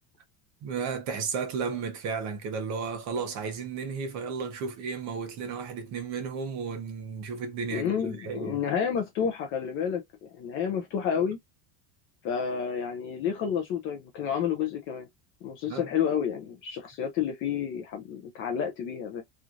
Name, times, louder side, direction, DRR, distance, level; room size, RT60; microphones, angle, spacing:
voice 1, 0.6-7.9 8.2-8.6 15.7-15.9, right 5 dB, 40° right, 0.8 m, -33 dB
voice 2, 7.7-11.4 12.2-15.1 15.4-19.2, left 7 dB, 30° left, 0.4 m, -30 dB
3.1 x 2.3 x 2.5 m
cardioid pair, 175°, 42 cm